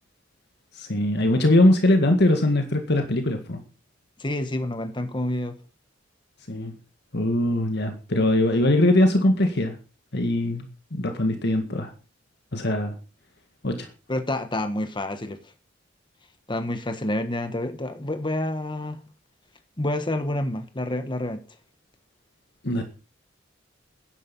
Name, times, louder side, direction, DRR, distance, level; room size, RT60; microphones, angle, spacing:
voice 1, 0.7-3.6 6.5-6.7 7.1-9.8 10.1-10.6 10.9-11.9 12.5-12.9 13.6-13.9 22.6-22.8, left 1 dB, 60° left, 1.9 m, -21 dB
voice 2, 4.2-5.6 14.1-15.4 16.5-19.0 19.8-21.4, left 1 dB, 25° left, 1.3 m, -28 dB
13.5 x 10.5 x 5.4 m
head